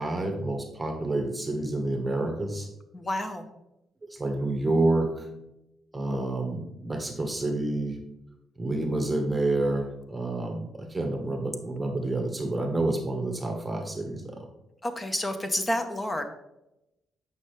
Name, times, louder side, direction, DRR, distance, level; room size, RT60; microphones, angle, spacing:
voice 1, 0.0-2.7 4.0-5.3 5.9-8.0 8.6-14.5, right 2 dB, 15° right, 4 dB, 1.1 m, -28 dB
voice 2, 2.9-3.5 14.8-16.2, left 1 dB, 20° left, 7 dB, 0.8 m, -29 dB
8.4 x 5.6 x 3.2 m, 0.89 s
cardioid pair, 90°, 0 cm